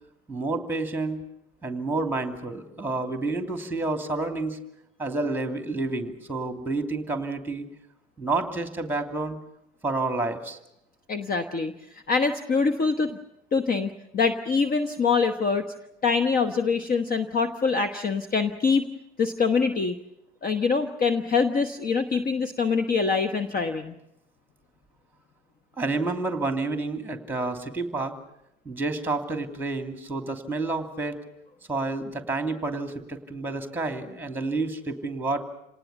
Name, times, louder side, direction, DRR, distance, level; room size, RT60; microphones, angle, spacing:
voice 1, 0.3-1.2 1.6-4.6 5.0-7.7 8.2-9.4 9.8-10.6 25.8-28.1 28.6-31.2 31.7-35.4, right 3 dB, 5° right, 6 dB, 2.7 m, -29 dB
voice 2, 11.1-13.2 13.5-15.6 16.0-18.8 19.2-20.0 20.4-23.9, left 5 dB, 25° left, 8 dB, 1.2 m, -24 dB
27.5 x 19.0 x 7.1 m, 0.82 s
hypercardioid pair, 85°, 35 cm